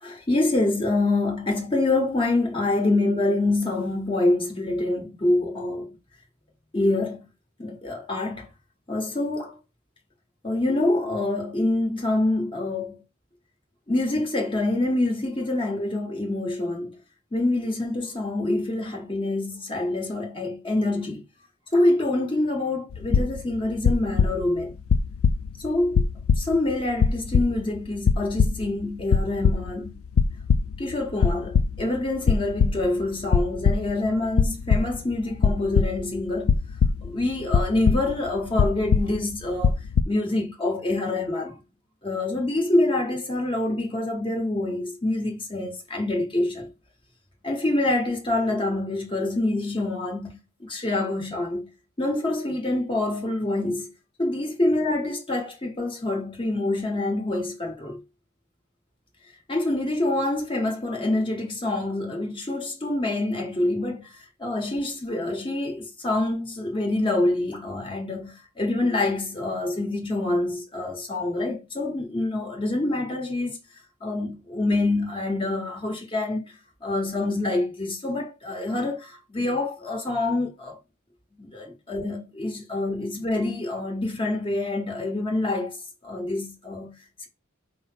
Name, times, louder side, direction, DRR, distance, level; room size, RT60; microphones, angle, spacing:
voice 1, 0.0-6.0 6.7-7.3 7.6-8.5 8.9-9.6 10.4-13.0 13.9-16.9 17.3-21.2 21.7-24.7 25.6-26.1 26.4-29.9 30.8-36.5 37.0-39.8 40.1-41.6 42.0-46.7 47.4-51.7 52.0-53.9 54.2-58.0 59.5-73.6 74.0-76.5 76.8-80.8 81.4-85.8 86.0-87.0, left 2 dB, 25° left, 1.3 m, -26 dB
sound 1, 22.9-23.6 23.8-24.6 24.9-25.7 25.9-26.7 27.0-27.8 28.1-28.8 29.1-29.9 30.2-30.8 31.1-32.0 32.3-33.0 33.3-34.1 34.4-35.0 35.4-37.2 37.5-38.3 38.6-39.3 39.6-40.0, left 5 dB, 90° left, 0.4 m, -21 dB
5.2 x 2.0 x 4.4 m
head